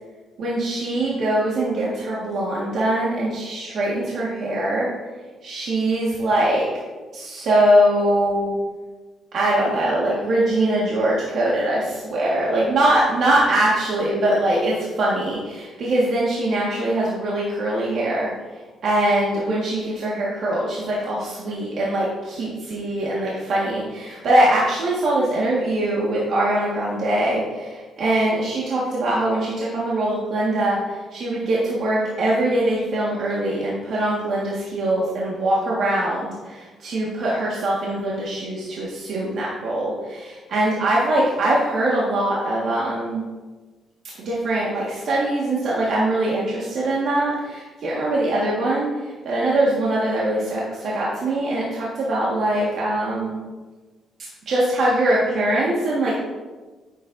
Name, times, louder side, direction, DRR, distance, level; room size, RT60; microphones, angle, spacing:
voice 1, 0.4-4.9 5.4-6.7 7.1-8.6 9.3-18.3 18.8-43.2 44.2-53.4 54.2-56.2, right 1 dB, 65° right, -6 dB, 1.8 m, -22 dB
9.5 x 7.6 x 2.7 m, 1.3 s
cardioid pair, 90°, 0 cm